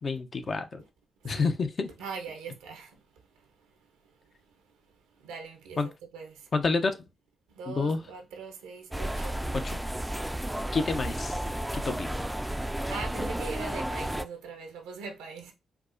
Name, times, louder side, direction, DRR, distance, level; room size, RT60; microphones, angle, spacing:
voice 1, 0.0-0.8 1.2-1.9 5.8-5.9 6.5-7.0 7.7-8.0 9.6-9.8 10.7-11.4 11.7-12.2, left 4 dB, 50° left, 0.5 m, -29 dB
voice 2, 2.0-2.9 5.2-6.3 7.5-9.5 12.9-15.5, right 5 dB, 90° right, 0.7 m, -41 dB
sound 1, 8.9-14.2, right 1 dB, 10° right, 0.3 m, -32 dB
4.6 x 2.1 x 2.5 m
supercardioid pair, 45°, 0 cm